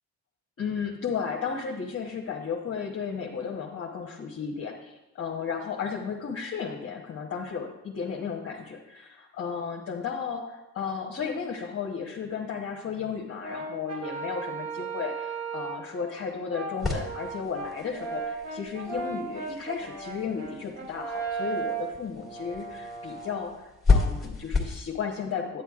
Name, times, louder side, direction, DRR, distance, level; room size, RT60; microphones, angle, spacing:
voice 1, 0.6-25.6, left 6 dB, 50° left, -2 dB, 1.0 m, -34 dB
Brass instrument, 13.4-15.9 16.5-23.5, right 5 dB, 55° right, 1.6 m, -36 dB
sound 1, 16.8-24.8, left 4 dB, ahead, 1.9 m, -31 dB
9.9 x 9.2 x 2.4 m, 0.96 s
cardioid pair, 90°, 30 cm